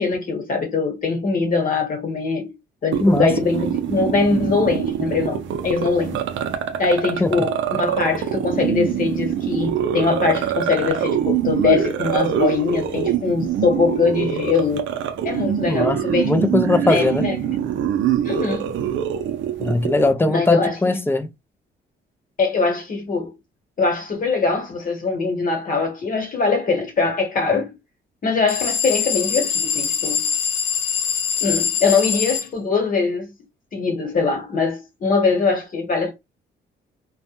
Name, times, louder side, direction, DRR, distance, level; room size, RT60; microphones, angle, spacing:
voice 1, 0.0-2.5 2.8-6.2 6.8-14.9 15.2-16.5 16.8-17.6 18.2-18.7 20.3-20.8 22.4-23.3 23.8-27.8 28.2-30.3 31.4-33.3 33.7-36.1, left 4 dB, 45° left, 1.2 m, -22 dB
sound 1, 2.9-20.1, right 9 dB, 70° right, 0.4 m, -24 dB
voice 2, 3.0-3.3 7.2-7.3 15.7-16.0 16.2-17.3 19.6-21.3, left 2 dB, 10° left, 0.4 m, -19 dB
sound 2, 28.5-32.5, left 7 dB, 80° left, 0.6 m, -23 dB
2.2 x 2.1 x 2.9 m
cardioid pair, 90°, 20 cm